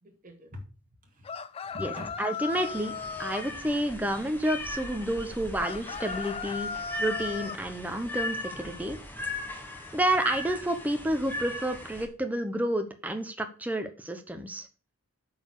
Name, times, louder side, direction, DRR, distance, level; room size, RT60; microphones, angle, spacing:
voice 1, 0.0-2.1, left 1 dB, 35° right, 1 dB, 2.5 m, -46 dB
sound 1, 1.2-3.5 5.6-7.6, left 5 dB, 25° left, 0.3 m, -36 dB
voice 2, 2.2-2.9 3.2-9.0 9.9-14.7, right 1 dB, 5° right, 6 dB, 0.8 m, -30 dB
sound 2, 2.5-12.1, left 1 dB, 10° left, 1.4 m, -38 dB
8.6 x 4.7 x 6.6 m, 0.36 s
head